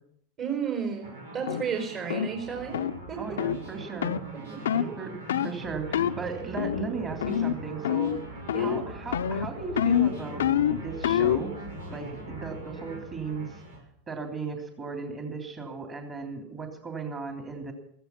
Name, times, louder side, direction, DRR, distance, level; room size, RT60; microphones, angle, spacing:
voice 1, 0.4-2.8 3.1-3.2 4.5-5.0 8.5-8.9, right 6 dB, 45° right, 2 dB, 4.7 m, -33 dB
sound 1, 1.0-13.8, right 1 dB, 90° right, 5.1 m, -42 dB
sound 2, 1.5-1.6 2.1-2.3 2.7-2.9 3.4-3.6 4.0-4.2 4.7-4.9 5.3-5.5 5.9-6.2 6.6-6.9 7.2-7.6 7.8-8.2 8.5-8.8 9.1-11.5, left 10 dB, 80° left, 0.6 m, -26 dB
voice 2, 3.2-4.2 5.0-10.5 10.8-11.5 11.9-13.6 14.1-17.7, right 5 dB, 30° right, 2 dB, 3.1 m, -36 dB
15.0 x 14.5 x 5.9 m, 0.66 s
hypercardioid pair, 100°, 0 cm